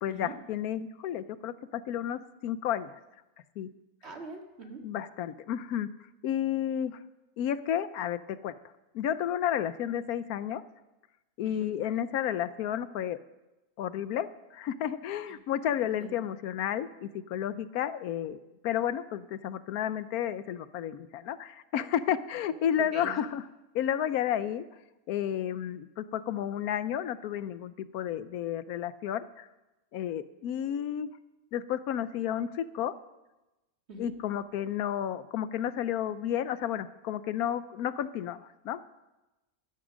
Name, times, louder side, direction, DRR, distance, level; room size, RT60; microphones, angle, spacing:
voice 1, 0.0-3.0 3.6-3.7 4.8-5.9 6.2-7.0 7.4-8.5 8.9-10.6 11.4-13.2 13.8-18.4 18.6-23.4 23.7-24.7 25.1-29.5 29.9-31.1 31.5-32.9 34.0-38.4 38.6-38.8, left 10 dB, 75° left, 14 dB, 1.1 m, -32 dB
voice 2, 4.0-4.8 11.4-11.7 16.0-16.2 22.9-23.1 33.9-34.1, right 2 dB, 45° right, 2 dB, 2.1 m, -43 dB
13.0 x 12.5 x 6.2 m, 1.0 s
omnidirectional pair, 1.6 m